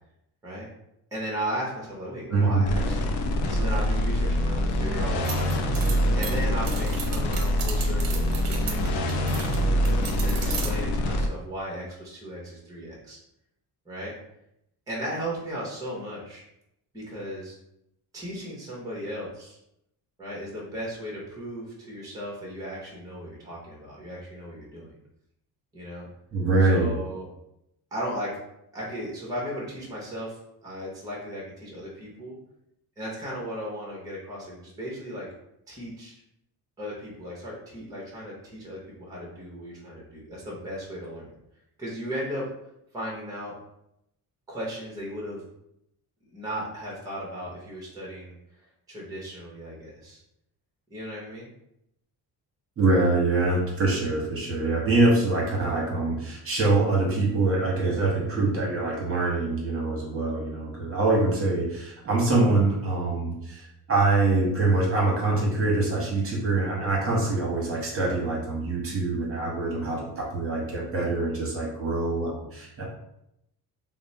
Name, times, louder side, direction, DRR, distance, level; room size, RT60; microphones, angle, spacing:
voice 1, 1.1-3.1 3.5-5.5 6.1-9.6 10.1-13.2 13.9-14.1 14.9-16.4 16.9-17.5 18.1-19.6 20.2-24.9 25.7-26.1 26.6-27.3 27.9-28.4 28.7-32.4 33.0-35.3 35.7-36.1 36.8-41.3 41.8-42.5 42.9-43.5 44.5-45.4 46.3-50.2 50.9-51.5 54.4-54.5, equal, 10° right, -4 dB, 0.8 m, -36 dB
voice 2, 2.3-2.7 26.3-27.0 52.8-72.8, right 2 dB, 35° right, -3 dB, 1.0 m, -24 dB
sound 1, 2.7-11.3, equal, 90° left, 0.6 m, -25 dB
sound 2, 5.3-9.6 9.9-10.7, right 6 dB, 60° right, 0.6 m, -36 dB
3.0 x 2.1 x 4.0 m, 0.81 s
cardioid pair, 140°, 38 cm